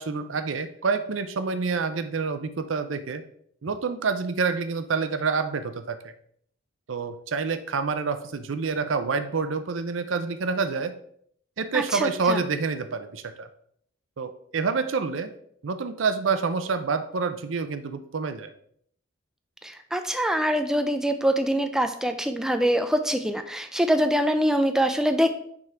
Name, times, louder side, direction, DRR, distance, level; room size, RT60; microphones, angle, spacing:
voice 1, 0.0-3.2 3.6-6.1 6.9-10.9 11.6-13.5 14.2-15.3 15.6-18.5, right 4 dB, 85° right, 10 dB, 0.6 m, -27 dB
voice 2, 11.7-12.4 19.6-25.3, equal, 5° right, 7 dB, 0.3 m, -24 dB
6.1 x 3.7 x 4.3 m, 0.66 s
head